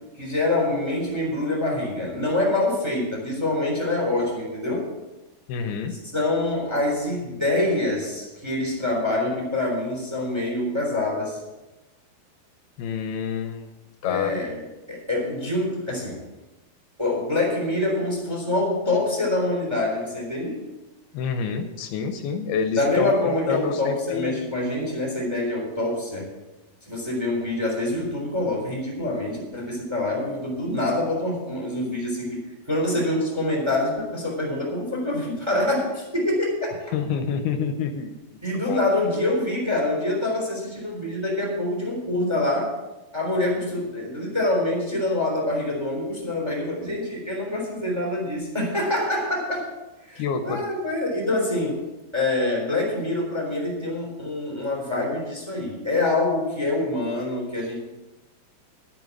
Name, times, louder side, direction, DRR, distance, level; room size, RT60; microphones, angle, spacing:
voice 1, 0.2-4.9 5.9-11.4 14.0-16.2 17.0-20.6 22.7-26.3 26.9-32.4 32.7-36.9 38.4-42.8 43.1-49.7 50.0-51.8 52.1-57.8, left 2 dB, 5° right, -2 dB, 3.2 m, -25 dB
voice 2, 5.5-6.0 12.8-13.7 14.0-14.3 21.1-23.1 23.5-24.4 36.9-38.1 38.5-38.8 50.2-50.6, left 6 dB, 80° left, 6 dB, 2.6 m, -27 dB
11.0 x 9.2 x 6.2 m, 1.1 s
omnidirectional pair, 4.7 m